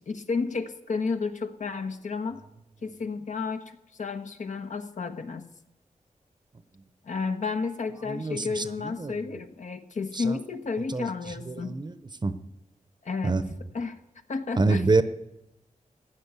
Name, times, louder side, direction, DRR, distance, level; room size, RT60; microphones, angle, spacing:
voice 1, 0.0-2.4 2.8-5.4 7.0-11.7 13.0-13.4 13.7-14.0 14.3-14.9, left 4 dB, 65° left, 7 dB, 1.2 m, -32 dB
voice 2, 8.1-9.2 10.1-10.4 10.9-11.1 11.4-11.9 12.2-12.3 13.2-13.4 14.6-15.0, right 3 dB, 30° right, 12 dB, 0.8 m, -26 dB
15.5 x 10.0 x 8.2 m, 0.90 s
wide cardioid pair, 95°, 14 cm